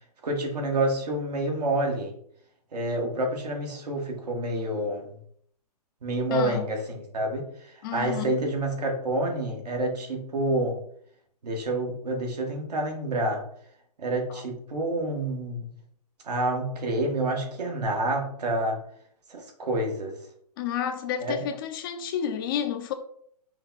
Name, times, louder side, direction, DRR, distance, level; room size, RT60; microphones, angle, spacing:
voice 1, 0.2-2.2 2.7-5.1 6.0-10.8 11.4-13.4 14.0-15.7 16.2-18.8 19.3-20.2 21.2-21.4, right 1 dB, 75° right, 1.6 m, -28 dB
voice 2, 6.3-6.7 7.8-8.4 14.3-14.4 20.6-22.9, left 8 dB, 35° left, 0.5 m, -31 dB
5.5 x 2.3 x 3.9 m
hypercardioid pair, 140°, 21 cm